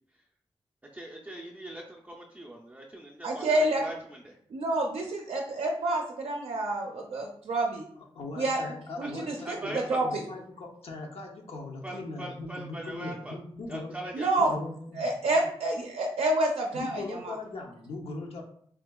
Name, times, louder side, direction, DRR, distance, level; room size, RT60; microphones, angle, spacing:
voice 1, 0.9-4.4 9.0-9.1 9.4-10.0 11.8-13.4 13.7-14.3, right 1 dB, 15° right, -3 dB, 0.4 m, -40 dB
voice 2, 3.2-3.8 4.5-7.8 8.4-8.6 9.0-10.2 14.1-14.5 15.0-17.3, right 2 dB, 75° right, 0 dB, 0.4 m, -28 dB
voice 3, 8.0-14.0 14.4-15.1 16.7-18.4, left 2 dB, 80° left, 1 dB, 0.6 m, -39 dB
3.6 x 2.7 x 2.2 m, 0.64 s
wide cardioid pair, 95°, 10 cm